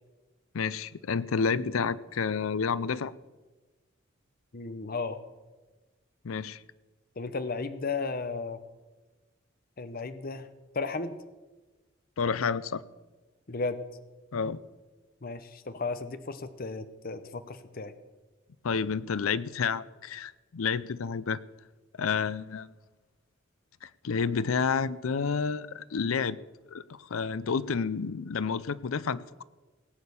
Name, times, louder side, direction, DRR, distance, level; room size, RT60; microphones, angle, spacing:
voice 1, 0.5-3.1 6.2-6.6 12.2-12.8 14.3-14.6 18.6-21.4 22.0-22.7 23.8-26.4 26.7-29.4, left 5 dB, 85° left, 0.5 m, -30 dB
voice 2, 4.5-5.2 7.2-8.6 9.8-10.5 10.7-11.2 13.5-13.8 15.2-17.9, left 3 dB, 45° left, 0.8 m, -34 dB
17.5 x 8.6 x 6.9 m
head